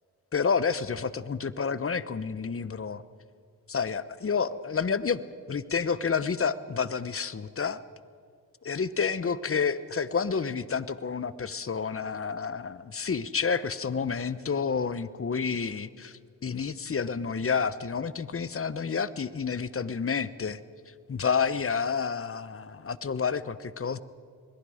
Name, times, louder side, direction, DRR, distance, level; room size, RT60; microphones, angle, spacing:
voice 1, 0.3-3.0 3.7-5.2 5.5-7.8 8.6-20.6 21.1-24.0, left 5 dB, 35° left, 16 dB, 1.0 m, -29 dB
27.0 x 21.0 x 5.1 m, 2.3 s
supercardioid pair, 50°, 39 cm